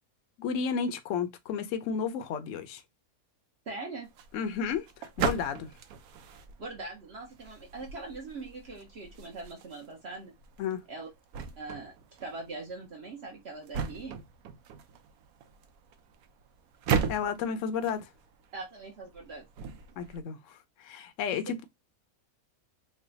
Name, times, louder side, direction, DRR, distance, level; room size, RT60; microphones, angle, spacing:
voice 1, 0.4-2.8 4.3-5.7 10.6-10.8 17.1-18.1 20.0-21.6, left 6 dB, 65° left, 0.8 m, -32 dB
voice 2, 3.7-4.1 6.6-10.3 10.9-11.1 11.6-11.9 12.2-14.2 18.5-19.5 21.3-21.4, right 3 dB, 55° right, 0.9 m, -41 dB
sound 1, 4.0-20.2, right 6 dB, 75° right, 1.0 m, -38 dB
3.2 x 2.2 x 3.8 m
omnidirectional pair, 1.6 m